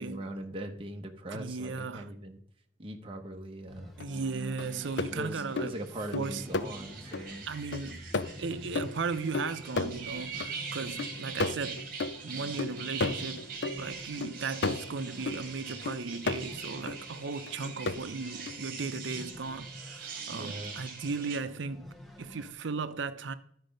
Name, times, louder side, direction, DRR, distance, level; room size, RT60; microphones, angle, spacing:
voice 1, 0.0-2.4 2.8-3.9 5.1-7.5 20.3-20.8, right 1 dB, 30° right, 0.9 m, -41 dB
voice 2, 1.3-2.1 4.0-5.8 6.1-6.5 7.5-8.1 8.4-11.8 12.2-13.4 13.8-21.9 22.2-23.3, right 4 dB, 75° right, 0.6 m, -36 dB
sound 1, 3.7-22.5, equal, ahead, 0.9 m, -48 dB
sound 2, 4.0-4.1 4.6-7.3 7.7-10.5 10.8-15.4 15.9-17.0 17.5-18.0 18.5-18.6, left 3 dB, 60° left, 0.5 m, -34 dB
sound 3, 4.6-21.4, right 5 dB, 50° right, 1.5 m, -43 dB
12.5 x 4.8 x 5.2 m
head